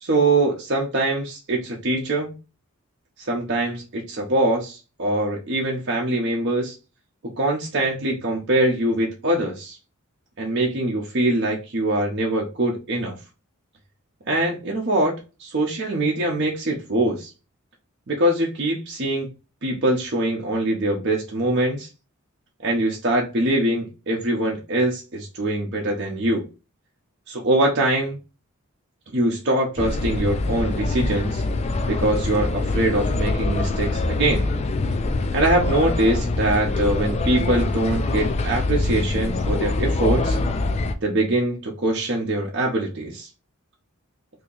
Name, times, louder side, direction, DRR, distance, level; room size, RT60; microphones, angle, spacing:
voice 1, 0.0-2.3 3.3-6.7 7.4-9.8 10.4-13.1 14.3-15.1 15.4-17.3 18.1-19.3 19.6-21.9 22.6-26.4 27.3-28.2 29.1-31.4 31.8-34.5 35.3-40.4 41.0-43.3, right 1 dB, 55° right, 0.7 m, -23 dB
sound 1, 29.8-41.0, left 2 dB, 30° left, 0.3 m, -24 dB
2.8 x 2.7 x 3.8 m
head